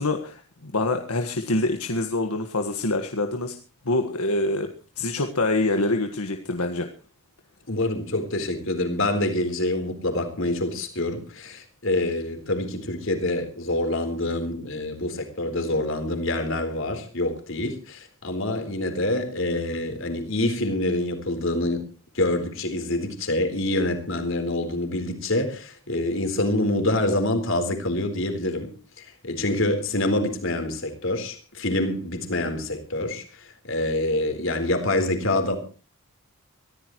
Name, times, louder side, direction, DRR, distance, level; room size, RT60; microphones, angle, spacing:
voice 1, 0.0-3.5 3.8-4.7 5.0-6.9, left 2 dB, 85° left, 5 dB, 1.6 m, -25 dB
voice 2, 7.7-21.8 22.1-28.7 29.0-35.6, left 1 dB, 65° left, 6 dB, 4.1 m, -26 dB
23.5 x 15.5 x 3.1 m, 0.35 s
head